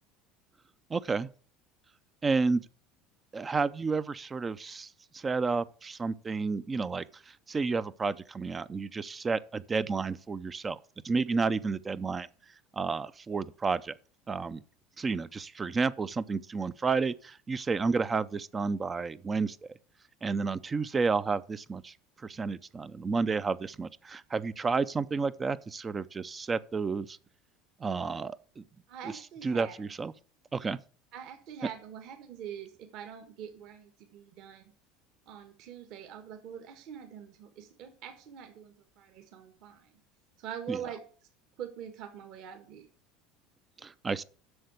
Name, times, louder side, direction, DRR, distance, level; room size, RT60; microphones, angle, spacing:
voice 1, 0.9-1.3 2.2-2.6 3.3-10.8 11.0-12.3 12.7-13.9 14.3-14.6 15.0-19.7 20.2-21.9 22.2-27.2 27.8-28.6 29.4-30.1 30.5-30.8 40.7-40.8 43.8-44.2, right 4 dB, 20° right, 0.4 m, -31 dB
voice 2, 28.9-29.9 31.1-34.7 35.2-39.9 40.4-41.0 41.6-42.9, right 8 dB, 55° right, 1.6 m, -44 dB
7.8 x 6.6 x 8.1 m
cardioid pair, 150°, 0 cm